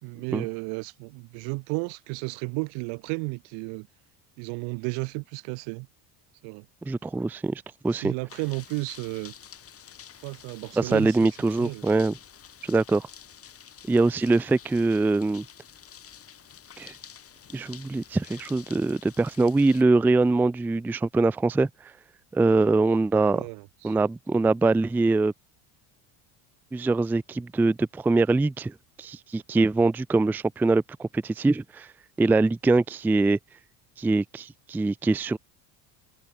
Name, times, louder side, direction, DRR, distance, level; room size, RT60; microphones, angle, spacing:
voice 1, 0.0-3.9 4.4-5.9 6.4-6.6 7.9-9.3 10.2-11.3 11.6-11.8 23.2-23.9, right 35 dB, 80° right, 3.3 m, -33 dB
voice 2, 6.9-8.1 10.8-12.2 12.6-13.1 13.9-15.4 16.8-16.9 17.5-21.7 22.3-23.5 23.8-25.3 26.7-31.9 32.2-33.4 34.0-35.4, right 3 dB, 5° right, 0.4 m, -23 dB
sound 1, 8.3-19.8, left 8 dB, 30° left, 3.0 m, -49 dB
cardioid pair, 130°, 42 cm